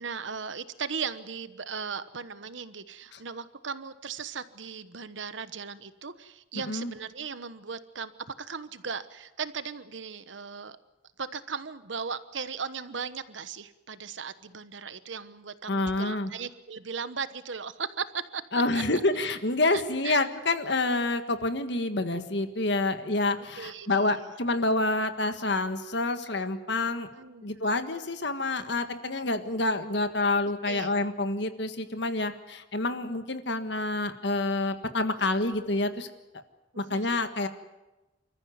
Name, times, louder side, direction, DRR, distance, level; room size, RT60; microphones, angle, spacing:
voice 1, 0.0-8.1 8.4-10.8 11.2-18.8 19.7-20.2 23.4-24.3 27.1-27.5 30.6-30.9 36.7-37.3, right 6 dB, 80° right, 13 dB, 1.1 m, -37 dB
voice 2, 15.7-16.3 18.5-27.1 27.4-36.1 36.8-37.5, left 2 dB, 65° left, 8 dB, 1.7 m, -28 dB
27.5 x 14.5 x 9.5 m, 1.0 s
head